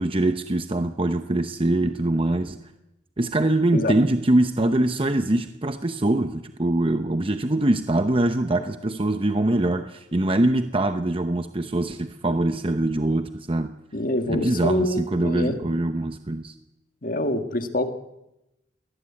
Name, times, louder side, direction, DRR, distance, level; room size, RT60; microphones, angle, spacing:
voice 1, 0.0-2.6 3.2-13.7 14.3-16.5, right 1 dB, 30° right, 8 dB, 0.8 m, -23 dB
voice 2, 13.9-15.6 17.0-17.9, left 1 dB, 50° left, 7 dB, 1.8 m, -25 dB
22.0 x 18.5 x 8.5 m, 0.92 s
head